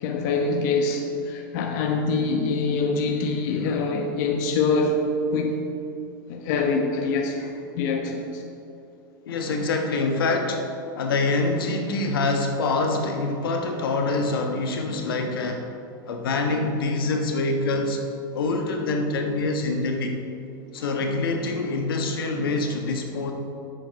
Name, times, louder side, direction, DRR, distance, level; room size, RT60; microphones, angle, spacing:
voice 1, 0.0-5.0 5.3-5.7 6.3-8.4, left 4 dB, 55° left, 3 dB, 1.1 m, -25 dB
voice 2, 9.3-10.6 11.0-15.6 16.1-18.0 18.3-20.1 20.7-23.3, left 3 dB, 85° left, 3 dB, 1.4 m, -25 dB
10.5 x 8.1 x 4.7 m, 2.6 s
supercardioid pair, 135°, 12 cm